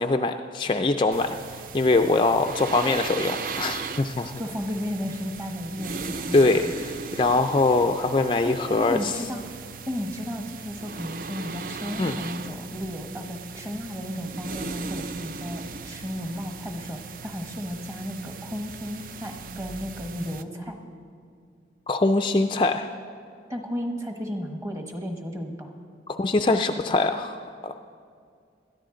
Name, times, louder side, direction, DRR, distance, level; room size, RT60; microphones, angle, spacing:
voice 1, 0.0-4.3 6.3-6.7 7.2-9.1 12.0-12.2 21.9-22.9 26.1-27.4 27.6-27.7, left 2 dB, 25° left, 6 dB, 0.4 m, -23 dB
sound 1, 1.1-20.4, right 5 dB, 50° right, 0.4 m, -38 dB
voice 2, 4.4-6.9 8.4-9.6 9.9-20.8 23.5-25.7, equal, 15° right, 3 dB, 1.3 m, -34 dB
20.5 x 13.5 x 3.8 m, 2.3 s
head